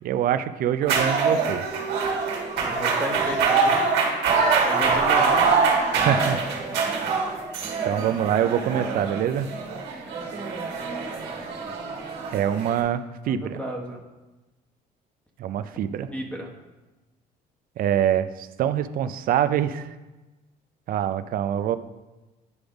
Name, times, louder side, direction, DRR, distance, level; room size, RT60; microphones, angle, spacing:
voice 1, 0.0-1.6 6.0-6.4 7.8-9.5 12.3-13.6 15.4-16.1 17.8-19.9 20.9-21.8, right 10 dB, 60° right, 12 dB, 0.4 m, -25 dB
sound 1, 0.8-12.8, right 4 dB, 85° right, 1.6 m, -24 dB
voice 2, 2.6-3.9 4.6-5.5 13.2-14.0 16.1-16.5, equal, 10° left, 0 dB, 1.1 m, -33 dB
9.6 x 3.4 x 5.1 m, 1.1 s
cardioid pair, 110°, 17 cm